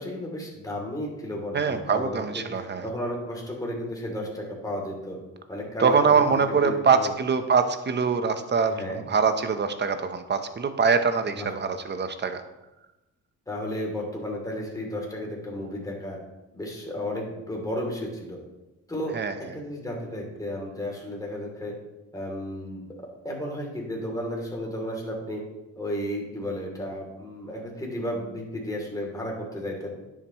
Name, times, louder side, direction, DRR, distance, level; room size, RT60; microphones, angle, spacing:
voice 1, 0.0-2.2 2.5-5.2 5.5-7.1 8.7-9.1 11.3-11.5 13.5-16.2 16.5-18.4 18.9-19.2 19.5-21.7 22.1-25.4 25.7-30.0, equal, 10° left, -2 dB, 3.0 m, -33 dB
voice 2, 1.5-2.9 5.8-12.4 19.1-19.5, right 5 dB, 35° right, 9 dB, 0.9 m, -24 dB
10.0 x 7.5 x 3.1 m, 0.99 s
cardioid pair, 90°, 30 cm